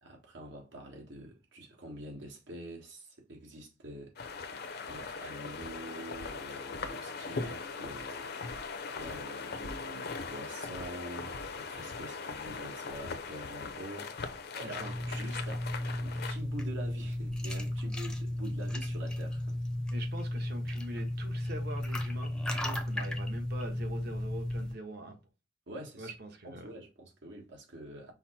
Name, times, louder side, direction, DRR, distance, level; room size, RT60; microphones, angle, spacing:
voice 1, 0.0-4.1 4.8-8.6 8.9-19.6 25.7-26.1 26.4-28.1, right 1 dB, 75° right, 1.5 m, -46 dB
sound 1, 4.2-16.4, left 4 dB, 60° left, 0.6 m, -40 dB
sound 2, 14.7-24.7, left 1 dB, 5° left, 0.6 m, -34 dB
voice 2, 19.9-25.2 26.0-26.7, right 1 dB, 60° right, 1.1 m, -43 dB
5.5 x 2.1 x 4.3 m
head